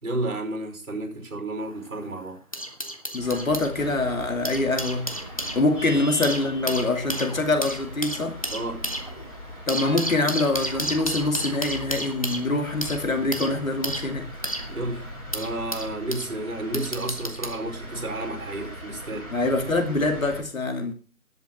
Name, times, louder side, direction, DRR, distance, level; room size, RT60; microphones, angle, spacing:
voice 1, 0.0-2.4 5.9-6.0 8.5-8.9 14.7-15.1 15.3-19.3, right 2 dB, 60° right, 5.3 m, -31 dB
sound 1, 1.6-3.7 4.3-16.3 16.7-17.6 18.5-18.7, right 1 dB, 25° left, 0.8 m, -33 dB
voice 2, 3.1-5.1 5.5-8.4 9.7-14.3 19.3-20.9, left 2 dB, 60° left, 2.7 m, -24 dB
sound 2, 3.2-20.4, equal, 5° left, 6.1 m, -40 dB
11.5 x 8.0 x 6.4 m
figure-of-eight pair, 170°, 44 cm